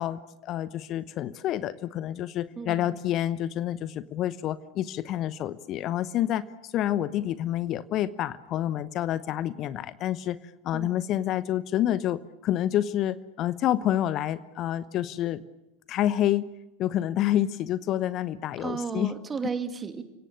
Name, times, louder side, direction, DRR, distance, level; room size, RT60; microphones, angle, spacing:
voice 1, 0.0-10.4 10.6-15.4 15.9-16.5 16.8-19.1, left 12 dB, 40° left, 16 dB, 0.9 m, -28 dB
voice 2, 2.6-3.0 10.7-11.0 18.6-20.0, right 5 dB, 20° right, 8 dB, 2.8 m, -34 dB
30.0 x 18.0 x 8.9 m, 0.98 s
figure-of-eight pair, 80°, 0 cm